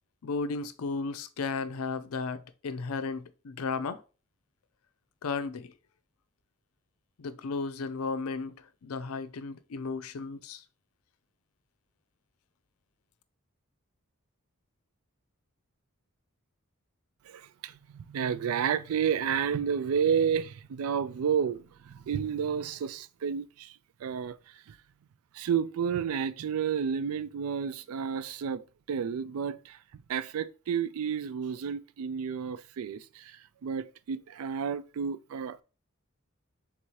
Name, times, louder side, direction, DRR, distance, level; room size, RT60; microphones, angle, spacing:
voice 1, 0.2-4.0 5.2-5.7 7.2-8.6 8.8-10.6, left 4 dB, 90° left, 0.5 m, -34 dB
voice 2, 17.2-24.8 25.3-35.6, right 7 dB, 85° right, 0.3 m, -31 dB
3.7 x 2.8 x 4.5 m
head